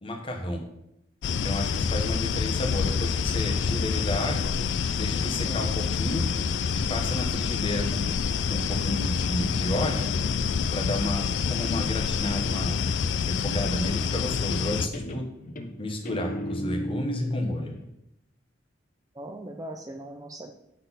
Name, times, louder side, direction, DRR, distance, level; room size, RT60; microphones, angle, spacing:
voice 1, 0.0-0.6 1.4-4.5 4.9-6.2 6.9-8.0 8.5-10.1 10.7-12.8 13.3-15.2 15.8-17.7, left 1 dB, 30° left, 2 dB, 1.2 m, -32 dB
sound 1, 1.2-14.9, left 6 dB, 70° left, 0.4 m, -27 dB
Guitar, 14.3-14.7 14.9-17.9, left 1 dB, 45° left, 0.7 m, -36 dB
voice 2, 19.2-20.5, right 1 dB, 20° right, 5 dB, 0.4 m, -39 dB
7.7 x 6.0 x 4.1 m, 0.83 s
head